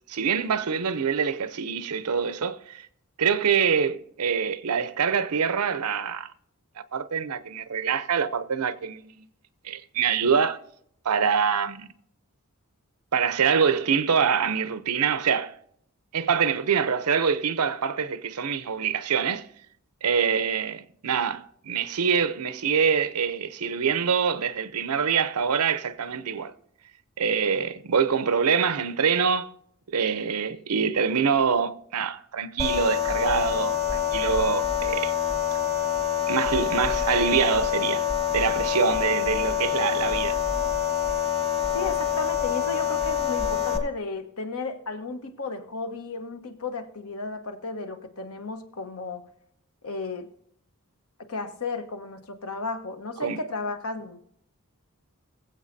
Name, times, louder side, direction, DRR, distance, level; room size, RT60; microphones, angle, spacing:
voice 1, 0.1-2.9 3.2-6.3 6.9-9.3 9.6-10.6 11.0-11.9 13.1-15.6 16.1-19.5 20.0-26.5 27.2-29.5 29.9-35.1 36.3-38.1 38.3-40.4 53.2-53.4, right 6 dB, 90° right, 0.7 m, -25 dB
sound 1, 32.6-43.8, left 8 dB, 25° left, 1.5 m, -26 dB
voice 2, 41.7-49.2 49.8-50.3 51.3-54.2, left 3 dB, 70° left, 1.2 m, -34 dB
22.0 x 7.8 x 2.7 m
head